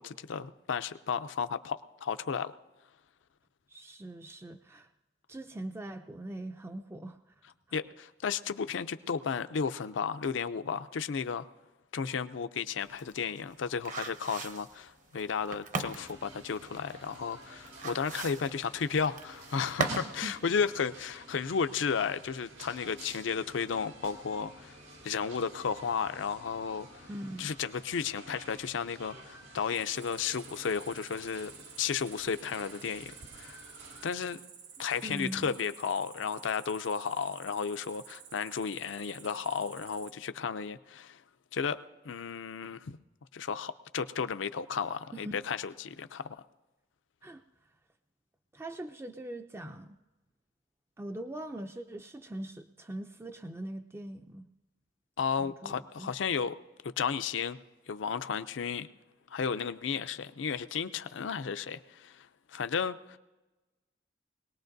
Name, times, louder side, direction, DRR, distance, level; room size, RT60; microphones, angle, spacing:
voice 1, 0.0-2.5 7.7-11.5 11.9-24.8 25.0-27.1 27.4-31.5 31.8-33.6 34.0-34.4 34.8-41.2 41.5-43.0 43.3-46.3 55.2-56.5 56.8-57.6 57.9-58.9 59.3-63.2, left 6 dB, 70° left, 11 dB, 0.5 m, -33 dB
voice 2, 3.7-4.9 5.3-7.8 19.9-20.3 27.1-27.5 35.0-35.6 45.1-45.4 47.2-47.4 48.5-50.0 51.0-54.5 55.4-56.1, right 1 dB, 15° right, 7 dB, 0.4 m, -42 dB
sound 1, 12.8-20.2 20.5-20.6, right 3 dB, 45° right, 0.8 m, -38 dB
sound 2, 15.8-34.1, right 1 dB, 90° right, 4.0 m, -51 dB
Cricket, 29.7-40.1, right 7 dB, 65° right, 1.1 m, -51 dB
21.5 x 18.5 x 2.6 m, 1.1 s
head